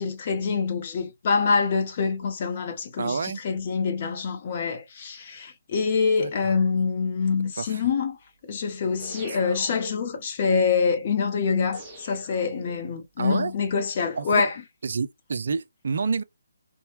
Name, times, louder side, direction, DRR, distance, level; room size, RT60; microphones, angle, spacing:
voice 1, 0.0-8.2 8.5-14.6, left 5 dB, 35° left, 0.6 m, -25 dB
voice 2, 3.0-3.4 6.2-6.6 7.6-7.8 13.2-13.5 14.2-14.4 14.8-16.2, right 5 dB, 55° right, 0.4 m, -29 dB
sound 1, 9.0-10.2 11.7-13.0, right 1 dB, 10° right, 1.0 m, -43 dB
2.8 x 2.1 x 2.8 m
figure-of-eight pair, 145°, 0 cm